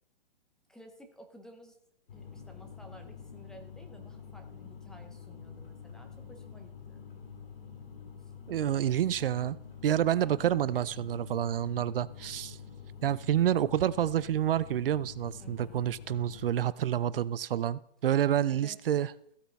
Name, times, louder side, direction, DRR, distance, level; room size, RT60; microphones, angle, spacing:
voice 1, 0.7-1.8 2.1-7.0 8.2-8.3 8.7-8.9 10.2-10.4 15.4-15.9 18.5-18.8, equal, ahead, 4 dB, 0.6 m, -54 dB
sound 1, 2.1-16.5, left 6 dB, 65° left, 3.0 m, -47 dB
voice 2, 8.5-9.6 9.8-12.6 13.0-19.1, right 11 dB, 65° right, 18 dB, 0.6 m, -28 dB
15.5 x 8.4 x 3.5 m, 0.75 s
hypercardioid pair, 150°, 30 cm